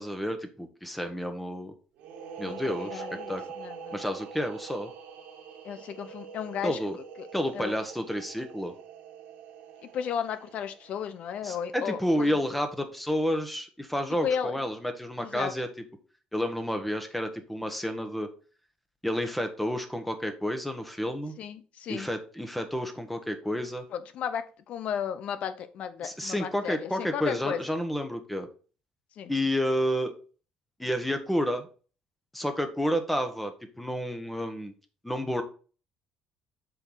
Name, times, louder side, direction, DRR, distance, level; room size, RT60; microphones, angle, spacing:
voice 1, 0.0-1.7 2.4-3.4 3.9-4.9 6.6-7.0 7.3-8.7 11.4-15.7 16.3-18.3 19.0-21.3 21.9-23.8 26.0-28.5 29.3-30.1 30.8-31.7 32.3-34.7 35.0-35.4, equal, 5° left, 6 dB, 1.3 m, -30 dB
sound 1, 2.0-11.5, right 6 dB, 80° right, 1.7 m, -44 dB
voice 2, 2.4-4.0 5.6-6.8 7.2-7.3 7.5-7.8 9.9-12.4 14.2-14.6 15.2-15.5 21.4-22.1 23.9-27.6 29.2-29.3, left 8 dB, 60° left, 11 dB, 0.8 m, -34 dB
7.6 x 4.7 x 3.9 m, 0.38 s
cardioid pair, 115°, 2 cm